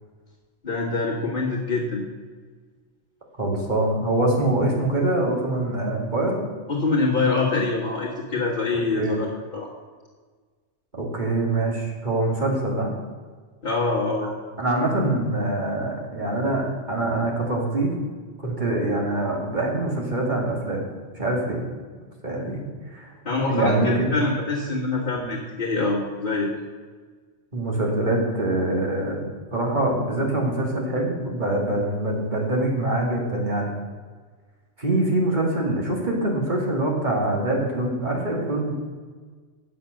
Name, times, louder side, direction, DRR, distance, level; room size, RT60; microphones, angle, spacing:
voice 1, 0.6-2.0 6.7-9.3 9.5-9.7 13.6-14.3 23.3-26.5, left 3 dB, 45° left, -6 dB, 1.8 m, -24 dB
voice 2, 3.4-6.4 8.7-9.2 10.9-12.9 14.6-17.9 18.4-20.8 21.1-21.6 22.2-22.6 22.9-23.1 23.5-24.1 25.2-25.3 27.5-33.7 34.8-38.7, right 2 dB, 40° right, -1 dB, 2.3 m, -24 dB
9.2 x 7.4 x 6.4 m, 1.5 s
omnidirectional pair, 1.3 m